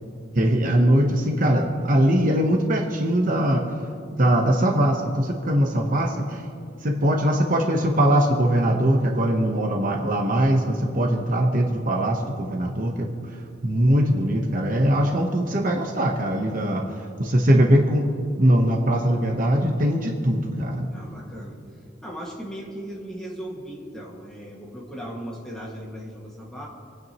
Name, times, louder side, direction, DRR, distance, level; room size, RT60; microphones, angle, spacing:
voice 1, 0.3-3.6 4.1-6.4 6.8-13.1 13.6-16.8 17.2-18.0 18.4-20.9, right 1 dB, 40° right, 1 dB, 1.0 m, -21 dB
voice 2, 20.9-21.6 22.0-26.7, equal, 5° left, -4 dB, 1.9 m, -37 dB
27.5 x 9.4 x 3.0 m, 2.4 s
head